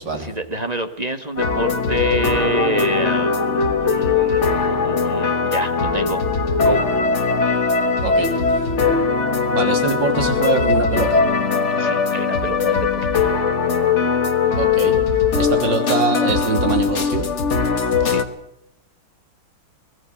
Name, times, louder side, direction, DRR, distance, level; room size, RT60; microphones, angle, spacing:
voice 1, 0.1-3.5 3.8-6.2 6.6-6.8 11.8-13.2 18.0-18.2, right 1 dB, 25° right, 8 dB, 1.3 m, -27 dB
sound 1, 1.4-18.2, left 5 dB, 40° left, 1.6 m, -20 dB
voice 2, 9.5-11.2 14.6-15.0 15.4-17.3, right 3 dB, 65° right, 4 dB, 3.8 m, -23 dB
24.0 x 18.5 x 6.0 m, 0.81 s
omnidirectional pair, 2.2 m